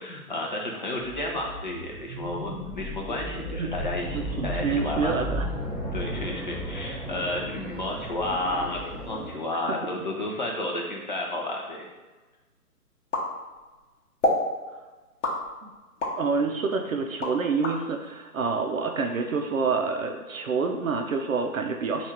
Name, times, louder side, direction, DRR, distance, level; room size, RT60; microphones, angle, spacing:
voice 1, 0.0-5.3 5.9-11.9 16.4-16.6, left 1 dB, 30° left, -1 dB, 0.5 m, -32 dB
sound 1, 1.0-9.3, equal, 5° left, 0.8 m, -34 dB
voice 2, 4.1-5.5 9.6-9.8 15.6-15.7 16.2-22.1, right 4 dB, 60° right, 4 dB, 0.5 m, -27 dB
sound 2, 13.1-13.8 14.2-14.5 15.2-16.2 16.7-17.8, left 1 dB, 50° left, 0.9 m, -27 dB
3.4 x 2.4 x 4.2 m, 1.2 s
figure-of-eight pair, 145°, 46 cm